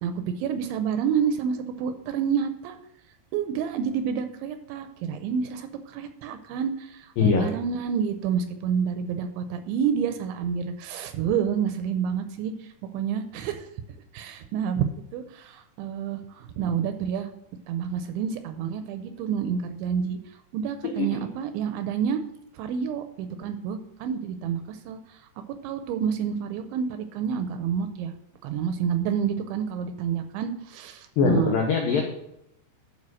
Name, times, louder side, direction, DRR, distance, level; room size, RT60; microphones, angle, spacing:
voice 1, 0.0-2.8 3.3-13.7 14.1-17.3 17.7-20.2 20.5-22.2 22.5-25.2 25.6-28.1 28.4-31.6, right 7 dB, 80° right, 8 dB, 2.8 m, -29 dB
voice 2, 20.8-21.3 31.2-32.0, left 5 dB, 90° left, 2 dB, 2.0 m, -22 dB
11.5 x 4.7 x 6.2 m, 0.80 s
omnidirectional pair, 5.6 m